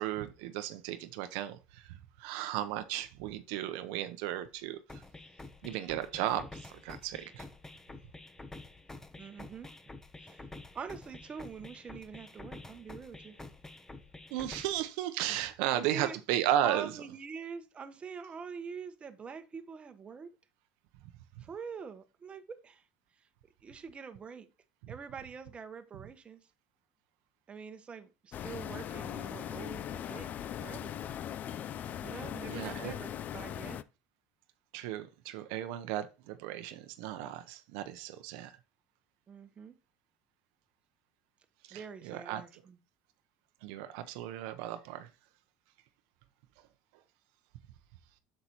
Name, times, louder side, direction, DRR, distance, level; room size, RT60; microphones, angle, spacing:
voice 1, 0.0-5.0 5.6-7.5 14.3-16.9 32.5-32.9 34.7-38.5 41.6-42.4 43.6-45.1, right 12 dB, 75° right, 0.7 m, -35 dB
sound 1, 4.9-14.9, left 2 dB, 10° left, 0.9 m, -49 dB
voice 2, 9.2-9.7 10.2-13.4 15.3-15.4 15.7-16.2 16.6-20.3 21.4-22.8 23.6-24.5 24.9-26.4 27.5-30.3 30.6-31.0 32.0-33.8 39.3-39.7 41.7-42.8, right 6 dB, 30° right, 1.1 m, -44 dB
sound 2, 28.3-33.8, left 10 dB, 45° left, 0.5 m, -39 dB
8.1 x 6.7 x 2.9 m
supercardioid pair, 95°, 4 cm